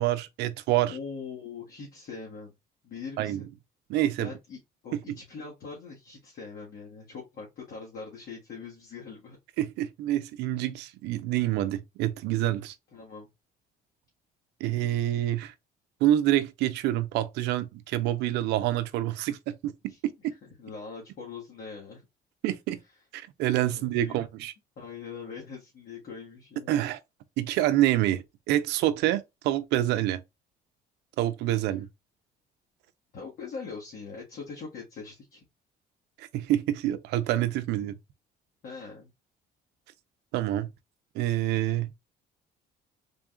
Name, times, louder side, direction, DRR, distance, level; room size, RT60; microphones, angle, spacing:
voice 1, 0.0-1.0 3.2-3.4 3.9-4.3 4.9-5.0 9.6-12.7 14.6-15.5 16.0-19.9 22.4-22.8 23.1-24.5 26.7-27.0 27.4-30.2 31.2-31.9 36.2-37.9 40.3-40.7 41.1-41.9, right 13 dB, 85° right, 0.5 m, -27 dB
voice 2, 0.9-2.5 2.8-3.5 4.2-9.4 12.9-13.3 19.9-20.0 20.6-22.0 23.7-24.2 24.8-26.9 31.5-31.7 33.1-35.4 38.6-39.1, left 5 dB, 60° left, 1.5 m, -42 dB
3.8 x 2.4 x 3.6 m
cardioid pair, 110°, 17 cm